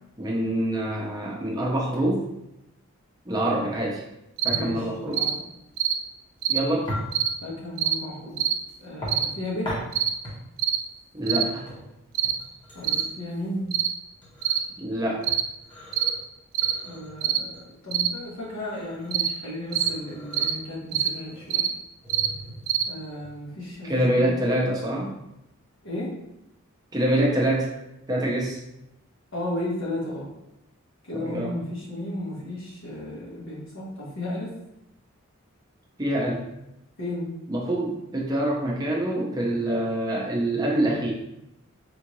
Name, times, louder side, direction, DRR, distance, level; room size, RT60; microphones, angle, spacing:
voice 1, 0.2-2.3 3.3-4.0 4.4-5.2 6.5-6.9 11.1-11.7 14.8-15.3 23.8-25.2 26.9-27.7 28.1-28.6 31.1-31.6 36.0-36.5 37.5-41.1, right 1 dB, 20° right, -3 dB, 0.6 m, -25 dB
sound 1, 4.4-24.0, equal, 25° left, 0.9 m, -40 dB
sound 2, 4.4-4.6 5.1-5.3 5.8-6.0 6.4-6.6 7.1-7.3 7.8-8.0 8.4-8.6 9.1-9.3 9.9-10.1 10.6-10.8 11.3-11.5 12.1-12.4 12.8-13.1 13.7-13.9 14.4-14.6 15.2-15.5 15.9-16.1 16.5-16.8 17.2-17.4 17.9-18.1 19.1-19.3 19.7-19.9 20.3-20.6 20.9-21.1 21.5-21.7 22.1-22.3 22.7-22.9, right 10 dB, 65° right, 0.3 m, -24 dB
voice 2, 4.5-5.4 7.4-8.5 8.8-9.8 12.7-13.7 16.8-21.7 22.8-24.3 25.8-26.1 29.3-30.3 31.0-34.5 37.0-37.4, left 1 dB, 70° left, -6 dB, 1.2 m, -34 dB
3.6 x 2.5 x 3.0 m, 0.85 s
head